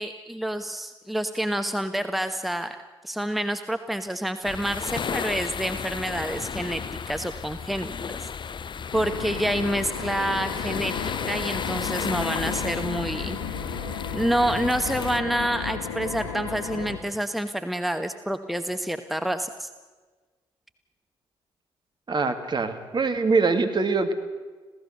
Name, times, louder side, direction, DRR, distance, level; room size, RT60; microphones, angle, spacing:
voice 1, 0.0-2.8 3.0-7.9 8.9-13.4 14.1-19.7, right 1 dB, ahead, 8 dB, 1.3 m, -28 dB
sound 1, 4.4-15.2, left 6 dB, 35° left, 0.6 m, -34 dB
sound 2, 8.9-17.0, left 6 dB, 70° left, 2.1 m, -34 dB
voice 2, 22.1-24.1, right 4 dB, 35° right, 6 dB, 2.6 m, -23 dB
26.5 x 17.0 x 6.8 m, 1.4 s
figure-of-eight pair, 45°, 13 cm